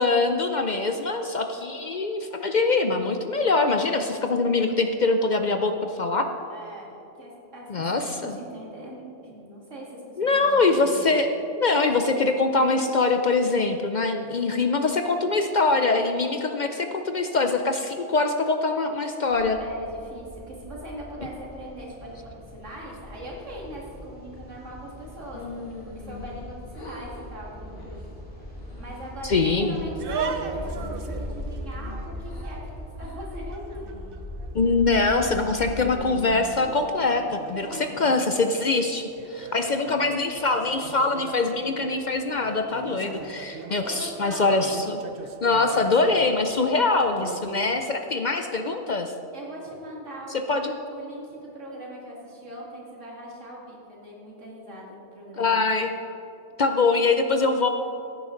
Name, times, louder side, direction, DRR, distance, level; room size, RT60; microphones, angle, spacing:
voice 1, 0.0-6.3 7.7-8.4 10.2-19.6 29.2-29.8 34.5-45.0 45.4-49.1 50.3-50.7 55.4-55.9 56.6-57.7, left 3 dB, 50° left, 6 dB, 0.6 m, -23 dB
voice 2, 6.5-11.1 19.6-28.1 28.8-33.9 39.6-39.9 42.9-43.4 43.8-44.6 49.3-55.6, right 1 dB, 90° right, -3 dB, 2.7 m, -41 dB
sound 1, 19.3-36.0, left 1 dB, 5° left, 2.4 m, -40 dB
sound 2, 25.3-26.5 26.7-27.3 27.7-28.0 28.5-29.1 29.6-30.3 30.7-32.5 33.0-33.2 33.7-34.2 34.7-35.2 35.5-37.1 37.6-38.2, left 3 dB, 80° left, 2.4 m, -43 dB
sound 3, 30.0-47.8, right 5 dB, 55° right, 0.8 m, -39 dB
15.5 x 9.3 x 3.9 m, 3.0 s
omnidirectional pair, 1.2 m